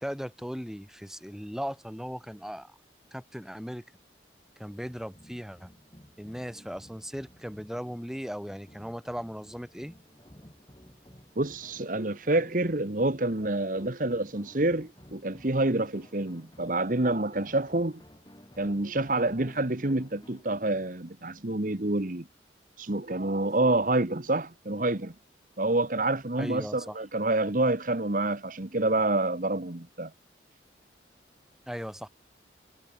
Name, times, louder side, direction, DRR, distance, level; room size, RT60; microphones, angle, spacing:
voice 1, 0.0-2.7 3.1-3.8 4.6-5.7 6.2-9.9 26.4-27.0 31.7-32.1, equal, 5° right, 3.4 m, -37 dB
sound 1, 4.8-20.5, equal, 20° left, 4.6 m, -54 dB
voice 2, 11.4-18.0 18.6-22.3 22.8-25.1 25.6-30.1, right 2 dB, 45° right, 1.4 m, -27 dB
head